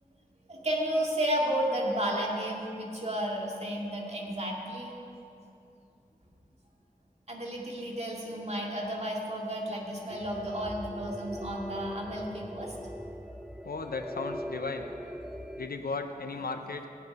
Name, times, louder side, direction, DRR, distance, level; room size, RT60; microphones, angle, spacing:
voice 1, 0.5-4.9 7.3-12.7, equal, 45° right, -2 dB, 2.2 m, -32 dB
sound 1, 10.1-15.7, equal, ahead, 0.5 m, -40 dB
voice 2, 13.6-14.9 15.6-16.9, left 4 dB, 85° left, 6 dB, 0.7 m, -35 dB
15.5 x 9.3 x 5.4 m, 2.7 s
wide cardioid pair, 50°, 15 cm